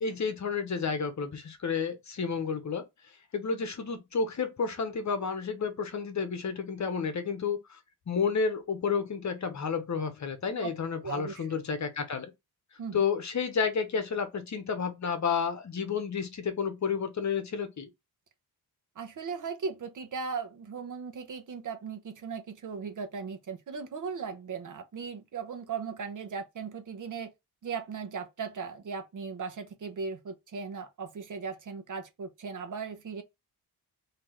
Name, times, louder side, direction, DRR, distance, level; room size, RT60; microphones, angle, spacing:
voice 1, 0.0-2.8 3.3-7.8 8.1-12.3 12.9-17.9, left 5 dB, 45° left, 1.0 m, -31 dB
voice 2, 11.0-11.6 12.8-13.0 19.0-27.3 27.6-33.2, right 5 dB, 50° right, 0.9 m, -37 dB
3.6 x 2.9 x 3.0 m
cardioid pair, 90°, 40 cm